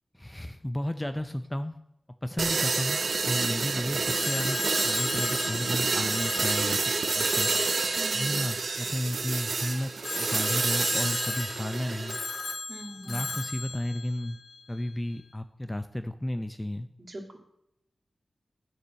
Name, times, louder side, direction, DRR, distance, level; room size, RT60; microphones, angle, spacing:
voice 1, 0.1-1.8 2.2-4.6 4.8-6.8 7.1-7.5 8.1-12.2 13.1-14.4 14.7-16.9, left 1 dB, 10° left, 9 dB, 0.5 m, -33 dB
sound 1, 2.4-12.2, right 4 dB, 75° right, 0.9 m, -29 dB
Telephone, 4.0-9.3 10.0-14.9, left 3 dB, 75° left, 1.1 m, -36 dB
voice 2, 8.0-8.4 12.7-13.4 17.1-17.4, right 1 dB, 40° right, 1 dB, 2.1 m, -42 dB
10.0 x 6.9 x 6.3 m, 0.79 s
wide cardioid pair, 120°, 0 cm